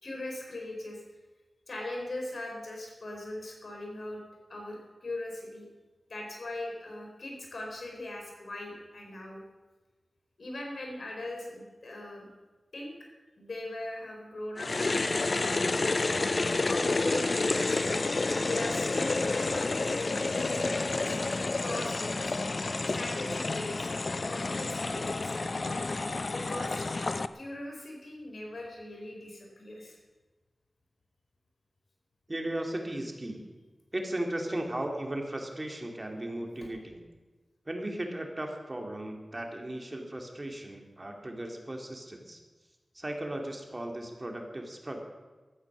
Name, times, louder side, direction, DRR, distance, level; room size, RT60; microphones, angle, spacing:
voice 1, 0.0-1.0 1.7-4.2 4.5-5.7 6.1-9.4 10.4-12.3 12.7-12.9 13.4-15.2 15.5-15.6 16.7-21.2 21.6-22.3 22.9-23.9 24.3-25.8 26.2-26.8 27.3-30.0, left 1 dB, 75° left, 0 dB, 4.4 m, -40 dB
sound 1, 14.6-27.3, left 3 dB, 55° left, 0.6 m, -30 dB
voice 2, 32.3-33.4 33.9-37.0 37.7-42.4 42.9-45.0, right 1 dB, 30° right, 2 dB, 2.7 m, -36 dB
15.5 x 13.0 x 6.2 m, 1.3 s
wide cardioid pair, 60°, 0 cm